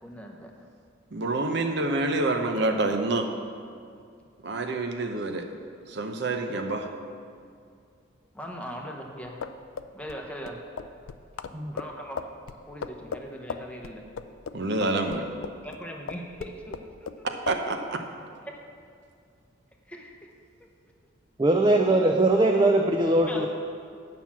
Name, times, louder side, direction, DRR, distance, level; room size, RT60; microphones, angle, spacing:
voice 1, 0.0-0.7 8.3-9.4 9.9-10.7 11.7-12.3 12.7-14.1 15.6-17.3 18.4-18.7 19.9-20.3 20.6-20.7 23.3-23.5, equal, 5° left, 1 dB, 0.8 m, -40 dB
voice 2, 1.1-3.3 4.4-5.5 5.9-6.9 14.5-15.3 17.2-18.0, right 2 dB, 60° right, 5 dB, 0.7 m, -27 dB
sound 1, 9.3-15.8 16.1-17.2 17.5-17.6, left 6 dB, 90° left, 0.4 m, -37 dB
voice 3, 21.4-23.5, right 2 dB, 20° right, 2 dB, 0.5 m, -21 dB
9.4 x 5.8 x 7.3 m, 2.3 s
head